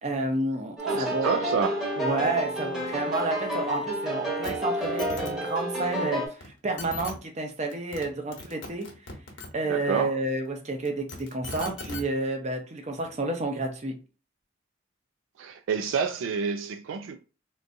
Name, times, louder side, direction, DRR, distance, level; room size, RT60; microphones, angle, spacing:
voice 1, 0.0-1.3 2.0-8.9 9.5-14.0, right 2 dB, 35° right, 0.6 m, -30 dB
sound 1, 0.8-6.3, equal, ahead, 0.9 m, -30 dB
voice 2, 0.8-1.8 9.7-10.1 15.4-17.2, right 6 dB, 80° right, 0.3 m, -29 dB
sound 2, 4.4-4.5 4.8-5.3 6.4-6.5 6.8-7.1 7.7-8.1 8.3-9.5 10.8-12.0 13.0-13.1, left 3 dB, 70° left, 1.0 m, -38 dB
3.6 x 2.6 x 2.6 m
head